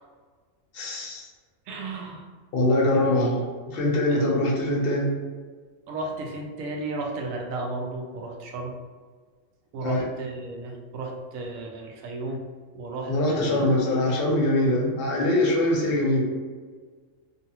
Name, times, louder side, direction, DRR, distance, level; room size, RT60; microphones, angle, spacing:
voice 1, 0.7-1.3 2.5-5.1 9.8-10.0 13.1-16.2, left 1 dB, 55° left, -3 dB, 0.7 m, -23 dB
voice 2, 1.7-2.2 5.9-8.7 9.7-12.4 12.7-13.6, right 2 dB, 85° right, 1 dB, 1.0 m, -34 dB
2.6 x 2.4 x 2.8 m, 1.5 s
omnidirectional pair, 1.4 m